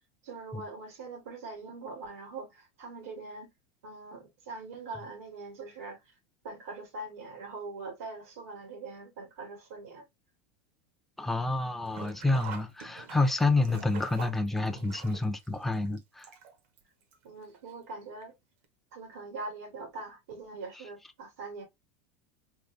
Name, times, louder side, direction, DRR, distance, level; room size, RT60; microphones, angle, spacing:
voice 1, 0.2-3.5 3.8-6.0 6.4-10.0 17.2-18.3 18.9-21.6, right 3 dB, 85° right, 2.3 m, -42 dB
voice 2, 11.2-16.3, left 2 dB, 5° left, 0.4 m, -28 dB
Sink (filling or washing), 11.8-16.8 17.1-17.2 18.2-18.3 18.6-18.7, right 6 dB, 65° right, 1.1 m, -45 dB
3.8 x 2.7 x 3.3 m
supercardioid pair, 155°, 8 cm